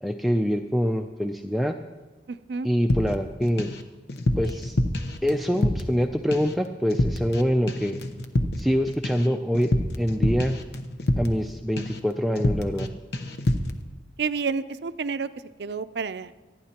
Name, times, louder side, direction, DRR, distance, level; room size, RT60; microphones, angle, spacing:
voice 1, 0.0-1.8 2.6-3.7 4.4-4.8 5.2-8.0 8.6-9.7 10.0-10.6 11.2-12.9, equal, ahead, 3 dB, 0.4 m, -25 dB
voice 2, 2.3-2.7 14.2-15.3 15.6-16.3, right 5 dB, 70° right, 13 dB, 0.5 m, -29 dB
sound 1, 2.9-3.8 4.1-6.0 6.3-6.6 6.9-7.4 7.7-11.5 11.8-12.1 12.4-12.9 13.1-13.8, left 1 dB, 70° left, 0.9 m, -27 dB
26.5 x 10.0 x 2.9 m, 1.2 s
head